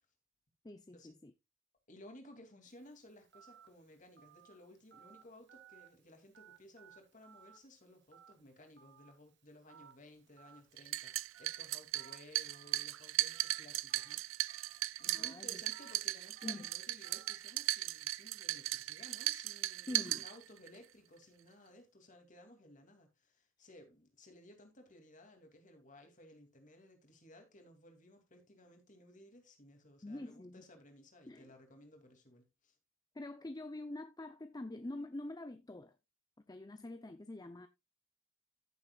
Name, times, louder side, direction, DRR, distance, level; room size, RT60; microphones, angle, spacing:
voice 1, 0.6-1.3 15.1-15.6 16.4-16.7 19.9-20.2 30.0-30.6 31.3-31.5 33.1-35.9 36.5-37.7, left 2 dB, 20° left, 0.6 m, -45 dB
voice 2, 1.9-14.6 15.0-32.8, left 1 dB, 40° left, 2.7 m, -58 dB
Telephone, 2.7-19.7, right 8 dB, 55° right, 1.9 m, -63 dB
sound 1, 10.8-20.8, right 17 dB, 75° right, 0.4 m, -37 dB
14.5 x 7.1 x 2.4 m
head